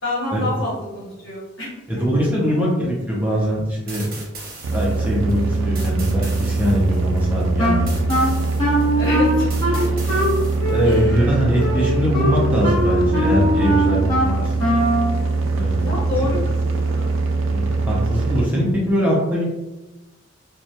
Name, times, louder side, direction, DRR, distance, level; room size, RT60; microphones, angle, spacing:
voice 1, 0.0-1.7 5.4-5.8 9.0-9.5 9.7-9.8 10.8-11.4 11.7-12.2 13.9-14.3 15.8-16.4 16.7-17.2, left 2 dB, 70° left, -7 dB, 1.0 m, -29 dB
voice 2, 1.9-4.2 4.7-8.5 10.7-14.8 15.5-15.9 17.5-19.4, equal, 10° right, -6 dB, 0.4 m, -22 dB
sound 1, 3.9-11.0, right 3 dB, 45° right, 0.7 m, -39 dB
sound 2, 4.6-18.5, right 3 dB, 70° right, 0.3 m, -22 dB
Wind instrument woodwind instrument, 7.6-15.1, equal, 20° left, 0.9 m, -21 dB
2.2 x 2.1 x 2.6 m, 1.0 s
head